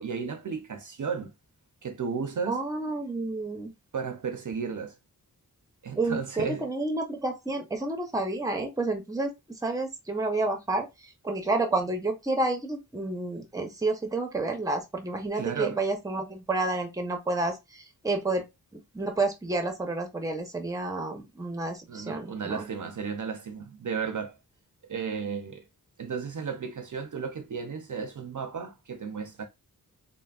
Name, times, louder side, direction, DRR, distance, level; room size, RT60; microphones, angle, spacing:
voice 1, 0.0-1.3 1.8-2.6 3.9-5.0 5.8-6.7 15.3-15.8 21.9-24.4 24.9-25.6 26.0-29.5, right 6 dB, 55° right, 0.6 m, -34 dB
voice 2, 2.5-3.7 6.0-9.3 9.6-18.4 18.7-22.6, right 2 dB, 10° right, 0.7 m, -30 dB
3.3 x 2.1 x 2.3 m
wide cardioid pair, 70°, 38 cm